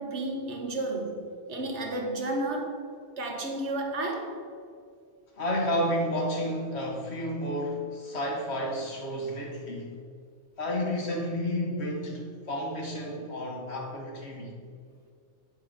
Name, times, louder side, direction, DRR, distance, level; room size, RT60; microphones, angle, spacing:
voice 1, 0.0-2.9 3.2-4.4, right 2 dB, 85° right, 1.4 m, -32 dB
voice 2, 5.4-9.9 10.6-14.5, equal, 70° left, 1.7 m, -31 dB
8.6 x 4.5 x 5.3 m
omnidirectional pair, 1.1 m